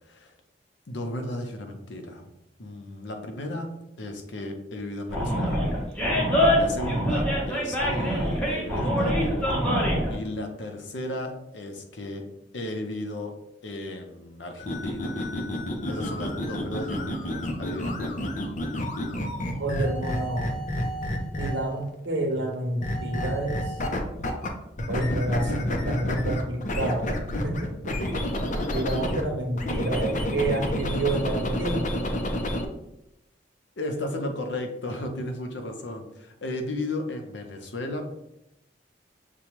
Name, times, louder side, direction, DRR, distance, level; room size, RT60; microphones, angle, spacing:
voice 1, 0.9-2.3 2.6-3.7 4.0-5.6 6.6-9.3 10.1-12.3 12.5-13.3 13.6-15.3 15.9-18.1 33.8-38.1, left 1 dB, 80° left, 4 dB, 0.7 m, -34 dB
Animal, 5.1-10.1, equal, 5° left, 0.9 m, -24 dB
sound 1, 14.6-21.8 22.8-24.5 24.8-29.2 29.6-32.7, left 1 dB, 45° left, 0.6 m, -29 dB
voice 2, 19.6-20.5 21.4-23.8 24.9-27.2 27.4-28.0 28.7-31.9, right 2 dB, 80° right, 2 dB, 0.9 m, -29 dB
6.8 x 2.3 x 3.0 m, 0.85 s
head